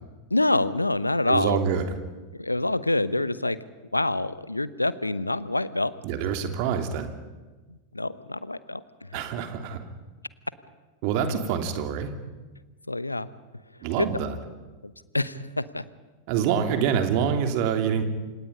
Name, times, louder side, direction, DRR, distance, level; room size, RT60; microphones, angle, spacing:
voice 1, 0.3-1.6 2.3-3.6 3.9-5.9 7.9-8.8 9.1-9.2 12.9-13.3 14.0-14.1 15.1-15.8, left 2 dB, 85° left, 16 dB, 0.9 m, -26 dB
voice 2, 1.3-2.0 6.0-7.1 9.1-9.8 11.0-12.1 13.8-14.4 16.3-18.0, right 7 dB, 45° right, 5 dB, 2.9 m, -26 dB
28.5 x 26.5 x 5.5 m, 1.2 s
figure-of-eight pair, 90°, 0 cm